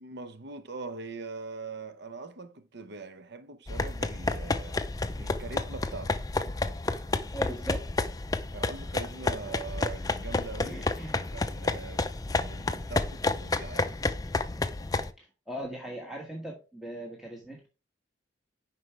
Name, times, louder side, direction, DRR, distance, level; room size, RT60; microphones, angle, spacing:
voice 1, 0.0-4.8 5.2-6.2 8.5-10.8 11.2-12.1 12.4-14.0, right 4 dB, 65° right, 0.9 m, -42 dB
sound 1, 3.7-15.1, left 3 dB, 20° left, 0.5 m, -31 dB
voice 2, 7.3-7.9 10.6-11.2 15.2-17.7, right 1 dB, ahead, 1.4 m, -39 dB
9.5 x 5.8 x 3.3 m
head